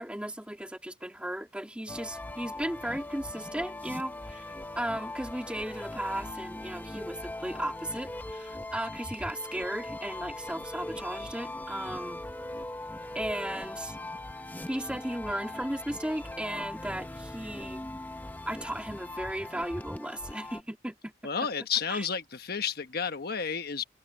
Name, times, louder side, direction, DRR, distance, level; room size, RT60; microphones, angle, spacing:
voice 1, 0.0-4.4 4.7-12.2 13.1-14.0 14.7-17.9 18.5-21.1 21.9-22.1, right 1 dB, 5° right, 2.1 m, -35 dB
sound 1, 1.9-20.6, left 1 dB, 10° left, 0.8 m, -40 dB
voice 2, 21.2-23.8, left 6 dB, 60° left, 1.2 m, -31 dB
head